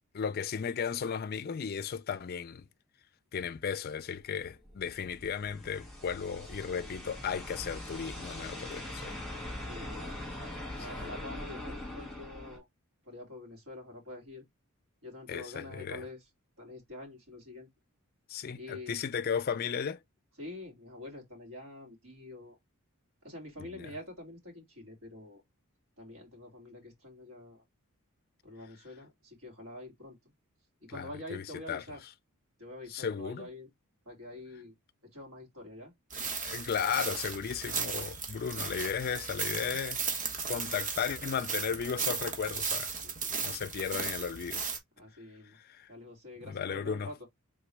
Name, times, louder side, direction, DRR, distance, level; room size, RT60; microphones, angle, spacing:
voice 1, 0.1-2.7 3.3-9.1 11.0-11.1 15.3-16.0 18.3-20.0 23.7-23.9 30.9-31.8 32.9-33.5 36.4-40.0 40.5-42.9 43.4-44.6 45.5-45.9 46.4-47.1, left 7 dB, 45° left, 0.4 m, -35 dB
sound 1, 4.4-12.6, left 1 dB, ahead, 1.9 m, -42 dB
voice 2, 9.6-10.2 10.7-12.6 13.0-14.4 15.0-16.3 16.6-17.7 18.5-19.0 20.4-22.6 23.2-25.4 26.0-27.6 28.4-30.2 30.9-32.0 32.6-33.7 34.0-34.7 35.1-35.9 38.2-38.3 43.0-43.6 45.0-45.6 45.9-47.3, left 1 dB, 65° right, 2.7 m, -46 dB
sound 2, 36.1-44.8, right 5 dB, 35° right, 1.1 m, -36 dB
3.9 x 3.7 x 3.2 m
head